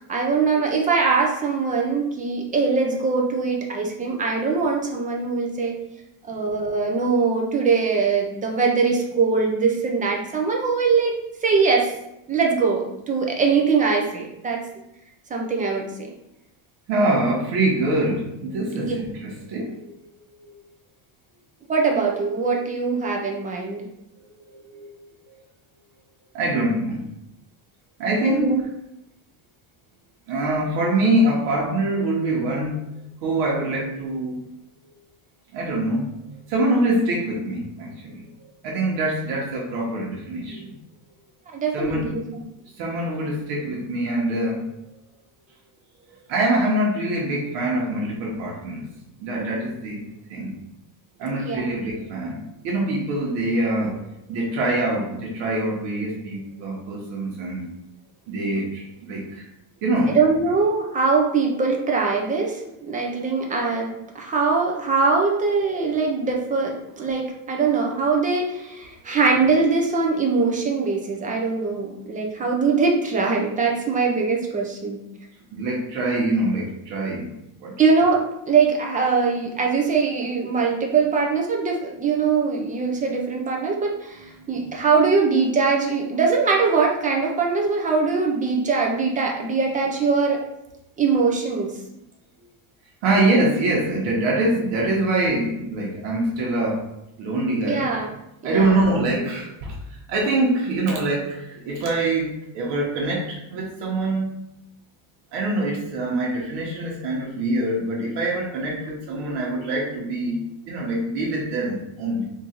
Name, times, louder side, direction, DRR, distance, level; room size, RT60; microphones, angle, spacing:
voice 1, 0.0-5.7 6.3-11.2 11.4-11.9 12.3-14.6 15.3-16.1 18.8-18.9 21.7-23.8 28.2-28.6 41.5-42.4 51.4-51.8 60.1-75.0 77.8-90.5 91.0-91.7 97.7-98.1 98.4-98.8, right 4 dB, 20° right, 0 dB, 0.3 m, -22 dB
voice 2, 16.9-19.9 20.2-20.5 24.4-24.9 26.3-27.1 28.0-28.5 30.3-32.8 33.2-34.4 35.5-36.1 36.5-38.3 38.6-40.7 41.7-42.1 42.8-44.7 46.3-48.9 49.2-50.0 50.3-50.6 51.2-54.0 54.3-57.6 58.3-59.4 59.8-60.2 75.5-77.7 84.4-84.6 93.0-96.8 97.2-97.9 98.4-99.7 100.1-104.3 105.3-112.2, right 2 dB, 65° right, -3 dB, 1.2 m, -24 dB
3.8 x 2.6 x 4.3 m, 0.85 s
cardioid pair, 165°, 47 cm